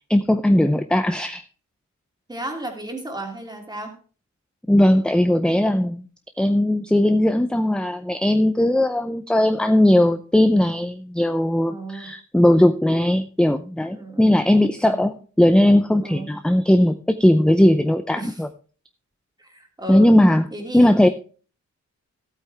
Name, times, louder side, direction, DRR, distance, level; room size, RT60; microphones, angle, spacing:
voice 1, 0.1-1.4 4.7-6.0 6.4-18.5 19.9-20.5 20.7-21.1, left 1 dB, 5° left, 9 dB, 0.5 m, -18 dB
voice 2, 2.3-4.0 11.7-12.1 13.9-14.4 14.8-15.1 16.0-16.4 18.2-18.4 19.4-20.1 20.5-20.9, right 1 dB, 15° right, 2 dB, 2.7 m, -34 dB
15.0 x 8.5 x 3.4 m, 0.39 s
wide cardioid pair, 170°, 30 cm